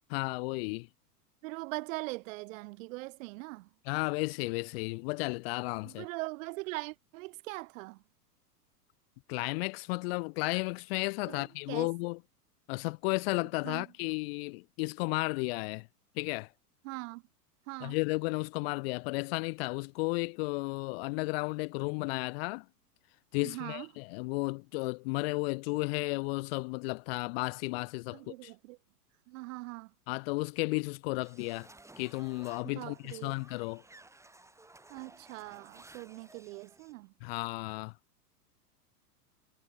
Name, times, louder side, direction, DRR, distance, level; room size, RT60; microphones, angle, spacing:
voice 1, 0.1-0.9 3.9-6.1 9.3-12.2 12.7-15.9 16.2-16.5 17.8-22.6 23.3-28.5 30.1-31.7 32.0-33.8 37.2-37.9, left 27 dB, 40° left, 0.6 m, -33 dB
voice 2, 1.4-3.7 5.8-8.0 11.3-11.9 13.6-13.8 16.8-17.2 17.7-18.0 23.4-23.9 28.1-28.8 29.3-29.9 32.6-33.3 34.9-37.1, right 23 dB, 50° right, 2.5 m, -41 dB
Zombie Horde, 31.2-37.0, right 2 dB, 5° right, 6.3 m, -56 dB
hypercardioid pair, 115°, 48 cm